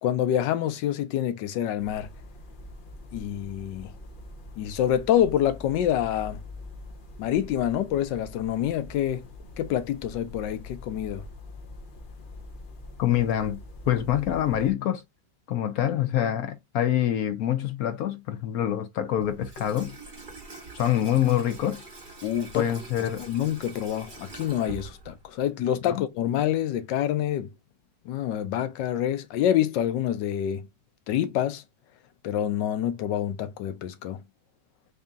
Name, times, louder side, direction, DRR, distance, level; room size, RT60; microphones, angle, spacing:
voice 1, 0.0-2.1 3.1-3.9 4.6-6.4 7.2-9.2 9.6-11.2 22.2-22.7 23.2-27.5 28.1-30.6 31.1-31.6 32.2-34.2, left 11 dB, 85° left, 1.3 m, -27 dB
sound 1, 1.8-14.7, left 2 dB, 50° left, 0.6 m, -44 dB
voice 2, 13.0-13.6 13.9-15.0 15.5-20.0 20.7-21.8 22.5-23.2 25.9-26.0, left 11 dB, 70° left, 0.9 m, -25 dB
Water tap faucet / Sink (filling or washing), 19.2-25.4, right 3 dB, 30° right, 1.4 m, -44 dB
3.4 x 2.7 x 3.6 m
omnidirectional pair, 1.9 m